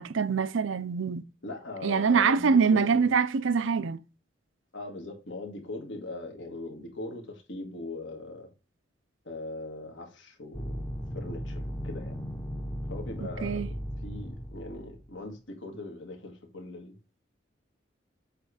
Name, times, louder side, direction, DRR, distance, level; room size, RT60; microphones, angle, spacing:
voice 1, 0.0-1.2 1.8-4.0 13.4-13.7, right 5 dB, 85° right, 0.5 m, -24 dB
voice 2, 1.4-3.1 4.7-8.5 9.2-10.9 11.1-12.2 12.9-13.7 14.0-17.0, left 2 dB, 75° left, 1.8 m, -40 dB
sound 1, 10.5-15.1, equal, 15° left, 0.7 m, -36 dB
7.7 x 3.1 x 4.8 m
head